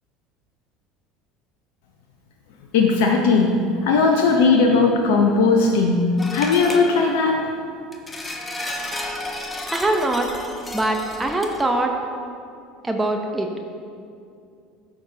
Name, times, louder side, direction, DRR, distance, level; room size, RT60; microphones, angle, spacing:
voice 1, 2.7-6.0 6.3-7.4, left 4 dB, 65° left, 2 dB, 0.7 m, -18 dB
sound 1, 6.2-7.2 7.9-11.6, left 1 dB, 20° left, 1.0 m, -32 dB
voice 2, 9.7-10.3 10.7-11.9 12.8-13.5, right 2 dB, 15° right, 3 dB, 0.8 m, -22 dB
14.0 x 6.0 x 2.8 m, 2.4 s
figure-of-eight pair, 70°, 0 cm